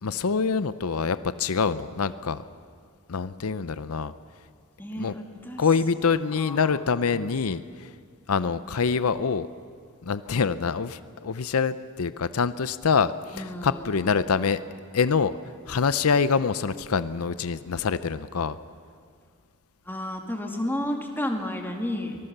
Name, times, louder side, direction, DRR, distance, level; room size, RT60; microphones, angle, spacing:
voice 1, 0.0-2.4 3.1-4.1 5.0-5.1 5.6-7.9 8.3-9.5 10.0-14.6 14.9-15.3 15.7-18.6, left 5 dB, 90° left, 14 dB, 0.6 m, -25 dB
voice 2, 4.8-5.6 6.4-6.8 7.1-7.3 13.3-14.1 19.9-22.2, left 1 dB, 10° left, 2 dB, 2.1 m, -32 dB
24.0 x 20.0 x 6.7 m, 2.1 s
head